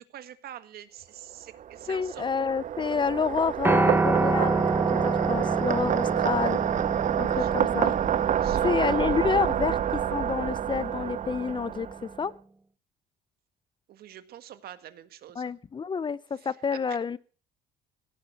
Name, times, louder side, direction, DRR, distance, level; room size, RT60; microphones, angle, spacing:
voice 1, 0.0-2.3 7.3-7.9 8.4-8.7 9.0-9.1 13.9-15.5 16.4-16.6 16.9-17.0, right 11 dB, 65° right, 11 dB, 1.8 m, -46 dB
sound 1, 1.5-12.2, right 10 dB, 45° right, 0.8 m, -28 dB
voice 2, 1.9-4.6 4.9-6.6 7.2-7.9 8.6-11.9 12.2-12.3 15.4-17.2, left 6 dB, 30° left, 19 dB, 0.6 m, -28 dB
Piano, 3.6-11.9, right 3 dB, 15° right, 1.1 m, -29 dB
17.0 x 9.3 x 7.9 m, 0.41 s
cardioid pair, 110°, 17 cm